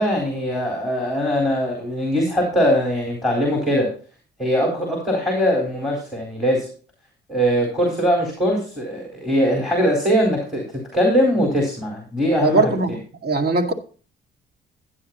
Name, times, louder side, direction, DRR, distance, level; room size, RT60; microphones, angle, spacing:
voice 1, 0.0-3.9 4.4-6.7 7.3-10.6 10.9-12.6, equal, ahead, 4.2 m, -21 dB
voice 2, 12.4-13.7, right 3 dB, 50° right, 2.0 m, -20 dB
12.5 x 9.6 x 3.0 m
cardioid pair, 90°, 20 cm